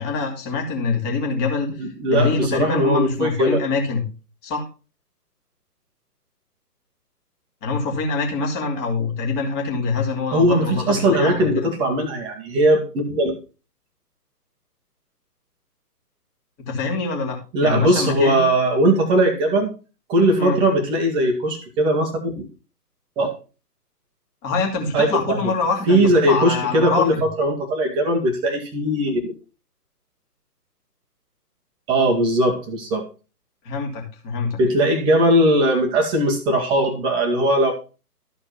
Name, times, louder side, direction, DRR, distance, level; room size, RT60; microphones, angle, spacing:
voice 1, 0.0-4.0 4.4-4.7 7.6-11.7 16.7-17.4 17.6-18.5 20.4-20.6 24.4-27.2 33.6-34.6, left 4 dB, 20° left, 1 dB, 2.3 m, -24 dB
voice 2, 1.8-3.6 10.3-13.3 17.5-19.7 20.1-22.5 23.2-23.3 24.9-25.5 25.9-29.3 31.9-33.0 34.6-37.7, right 1 dB, 10° right, 2 dB, 1.2 m, -19 dB
13.0 x 4.5 x 5.8 m, 0.34 s
figure-of-eight pair, 140°, 48 cm